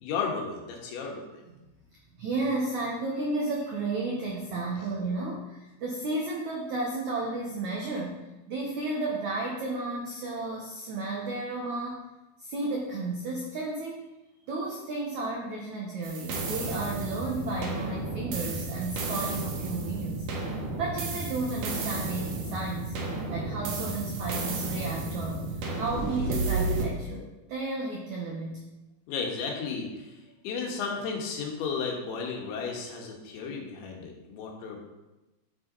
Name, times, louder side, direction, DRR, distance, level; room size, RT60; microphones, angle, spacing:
voice 1, 0.0-1.4 4.7-4.8 29.1-30.2 30.4-34.8, left 5 dB, 75° left, 0 dB, 3.8 m, -34 dB
voice 2, 2.2-8.2 8.5-12.0 12.4-14.1 14.5-23.0 23.3-28.7, right 2 dB, 80° right, -1 dB, 1.6 m, -33 dB
sound 1, 16.0-26.8, right 3 dB, 60° right, 2.5 m, -32 dB
13.5 x 7.4 x 4.0 m, 1.0 s
omnidirectional pair, 5.3 m